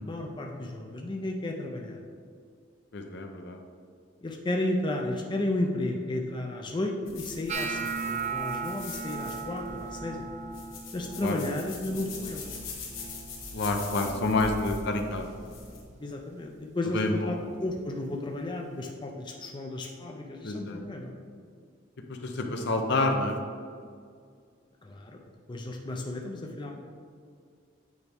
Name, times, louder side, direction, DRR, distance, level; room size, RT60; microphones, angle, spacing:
voice 1, 0.0-2.0 4.2-10.2 10.9-12.5 16.0-21.1 24.8-25.2 25.5-26.7, left 1 dB, 25° left, 1 dB, 0.5 m, -33 dB
voice 2, 2.9-3.6 11.2-11.4 13.5-15.3 16.9-17.5 20.4-20.8 22.1-23.4, left 2 dB, 60° left, 4 dB, 0.7 m, -28 dB
sound 1, 7.1-15.8, left 3 dB, 85° left, 1.6 m, -42 dB
sound 2, 7.5-13.6 13.9-14.4 14.7-15.3 15.9-16.1 17.9-18.0, right 5 dB, 35° right, 0.4 m, -37 dB
8.4 x 4.6 x 3.5 m, 2.1 s
head